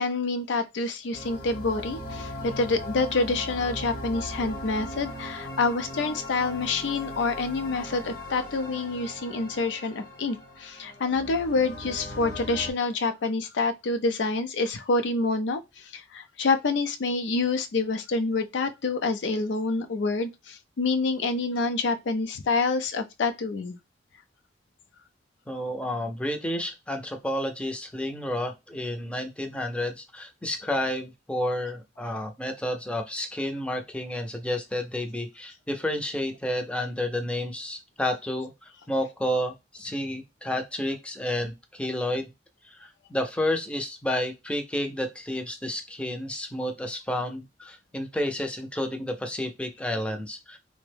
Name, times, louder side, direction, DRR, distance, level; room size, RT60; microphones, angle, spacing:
voice 1, 0.0-23.8, left 3 dB, 85° left, 0.5 m, -27 dB
sound 1, 1.1-12.7, left 1 dB, 55° left, 0.9 m, -38 dB
voice 2, 25.5-42.3 42.7-50.6, left 1 dB, 5° left, 0.5 m, -30 dB
3.4 x 2.1 x 3.3 m
head